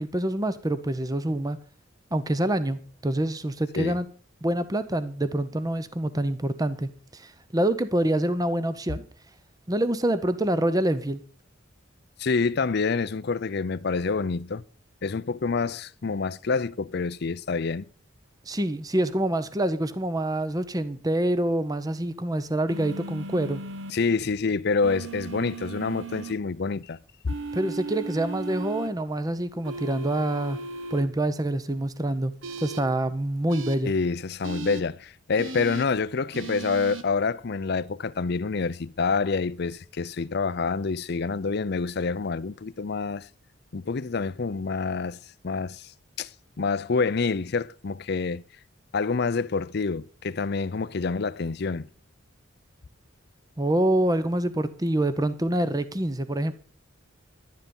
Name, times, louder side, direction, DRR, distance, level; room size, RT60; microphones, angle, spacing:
voice 1, 0.0-1.6 2.1-4.1 4.4-9.0 9.7-11.2 18.5-23.6 27.5-30.6 30.9-33.9 53.6-56.5, right 1 dB, 20° right, 0.8 m, -26 dB
voice 2, 12.2-14.6 15.0-17.8 23.9-27.0 27.2-27.3 33.8-43.3 43.7-45.2 45.4-45.9 46.2-46.3 46.6-48.4 48.9-51.9, left 4 dB, 55° left, 0.5 m, -27 dB
sound 1, 22.7-23.9 24.8-26.3 27.3-28.9 29.6-31.0 32.4-32.8 33.5-33.8 34.4-34.8 35.4-35.9 36.3-37.0, right 3 dB, 75° right, 1.4 m, -36 dB
11.5 x 10.5 x 5.3 m
head